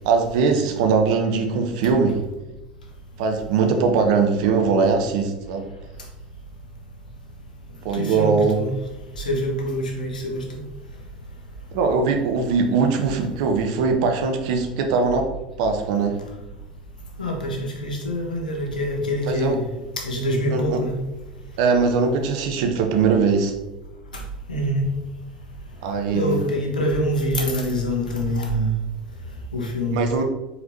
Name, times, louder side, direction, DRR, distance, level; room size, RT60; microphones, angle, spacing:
voice 1, 0.0-2.2 3.2-5.7 7.8-8.6 11.7-15.3 15.6-16.2 19.2-19.6 20.5-20.8 21.6-23.5 25.8-26.4 29.9-30.2, right 5 dB, 60° right, 5 dB, 0.6 m, -21 dB
voice 2, 7.9-8.7 9.2-10.6 17.2-19.6 20.0-21.0 24.5-24.9 26.1-28.7 29.5-30.0, equal, 85° left, 0 dB, 0.9 m, -25 dB
4.3 x 4.2 x 2.7 m, 1.0 s
figure-of-eight pair, 75°, 4 cm